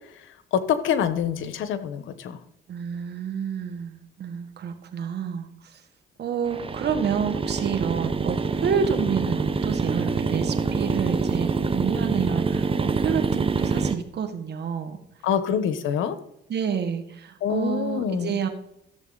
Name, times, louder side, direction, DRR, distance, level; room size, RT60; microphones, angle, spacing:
voice 1, 0.2-2.4 15.2-16.2 17.4-18.4, left 8 dB, 80° left, 12 dB, 1.0 m, -26 dB
voice 2, 2.7-5.8 6.2-15.0 16.5-18.5, right 7 dB, 60° right, 7 dB, 1.6 m, -29 dB
sound 1, 6.5-13.9, right 4 dB, 25° right, 0.9 m, -26 dB
14.0 x 7.0 x 3.9 m, 0.82 s
cardioid pair, 90°, 20 cm